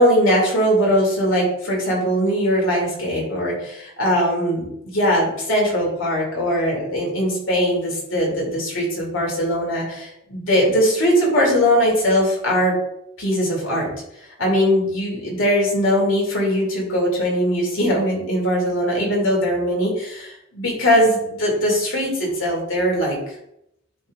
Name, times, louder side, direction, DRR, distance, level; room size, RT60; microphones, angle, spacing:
voice 1, 0.0-12.7 13.2-13.9 14.4-23.2, equal, 80° left, -2 dB, 2.4 m, -20 dB
10.0 x 4.4 x 2.4 m, 0.79 s
head